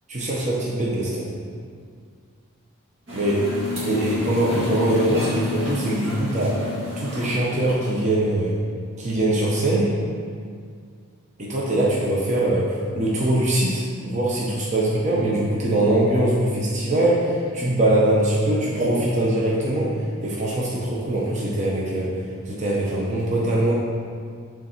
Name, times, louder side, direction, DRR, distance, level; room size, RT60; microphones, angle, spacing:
voice 1, 0.1-1.3 3.1-3.5 3.8-6.6 7.0-8.6 9.0-10.0 11.4-23.7, right 1 dB, 35° right, -5 dB, 0.8 m, -22 dB
sound 1, 3.1-8.3, left 3 dB, 60° right, 1.5 m, -30 dB
6.8 x 3.9 x 4.3 m, 2.1 s
head